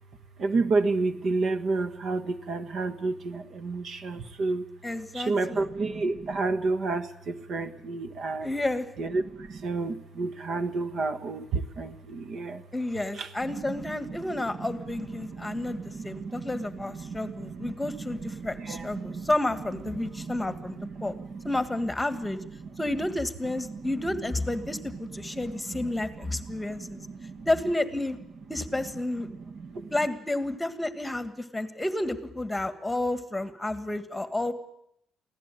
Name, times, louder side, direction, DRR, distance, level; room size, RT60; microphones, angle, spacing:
voice 1, 0.4-4.7 5.1-8.5 9.0-12.6 13.1-19.3 19.6-23.1 23.6-24.2 24.5-27.5 28.8-28.9 29.2-30.0, right 3 dB, 55° right, 8 dB, 1.5 m, -32 dB
voice 2, 4.8-5.6 8.4-8.9 12.7-21.1 21.4-22.4 22.8-27.1 27.4-28.2 28.5-29.3 29.9-34.5, left 2 dB, 10° left, 11 dB, 1.6 m, -31 dB
23.5 x 16.0 x 9.0 m, 0.77 s
cardioid pair, 115°, 0 cm